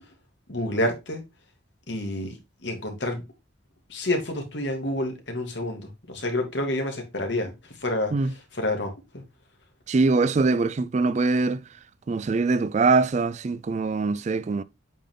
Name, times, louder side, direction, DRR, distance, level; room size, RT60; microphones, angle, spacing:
voice 1, 0.5-1.2 1.9-3.2 3.9-7.5 7.8-9.2, left 1 dB, 60° left, 2.1 m, -29 dB
voice 2, 9.9-11.6 12.1-14.6, right 3 dB, 35° right, 0.3 m, -23 dB
8.5 x 3.8 x 3.6 m
head